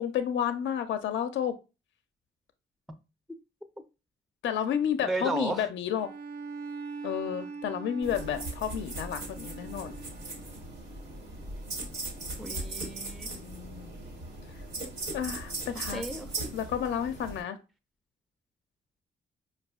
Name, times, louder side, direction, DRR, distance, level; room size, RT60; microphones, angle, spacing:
voice 1, 0.0-1.5 4.4-6.1 7.0-9.9 13.3-13.9 15.1-16.0 16.5-17.6, left 9 dB, 70° left, 0.4 m, -31 dB
voice 2, 5.0-5.7 12.4-13.3 15.7-16.3, right 2 dB, ahead, 0.4 m, -34 dB
Bowed string instrument, 6.0-10.7, right 4 dB, 60° right, 0.5 m, -42 dB
sound 1, 8.0-17.4, right 2 dB, 90° right, 1.2 m, -39 dB
4.7 x 2.2 x 2.3 m
supercardioid pair, 55°, 20 cm